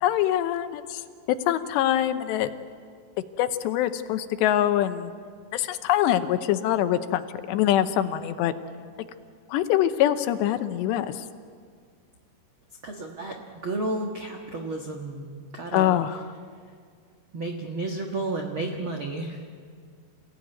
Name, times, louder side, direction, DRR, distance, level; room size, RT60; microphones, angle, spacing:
voice 1, 0.0-1.0 1.5-2.5 3.4-5.1 5.5-8.5 9.5-11.2 15.7-16.3, left 12 dB, 85° left, 10 dB, 3.1 m, -24 dB
voice 2, 12.8-16.0 17.3-19.4, right 2 dB, 75° right, 1 dB, 1.1 m, -32 dB
28.0 x 17.0 x 9.3 m, 2.1 s
omnidirectional pair, 4.9 m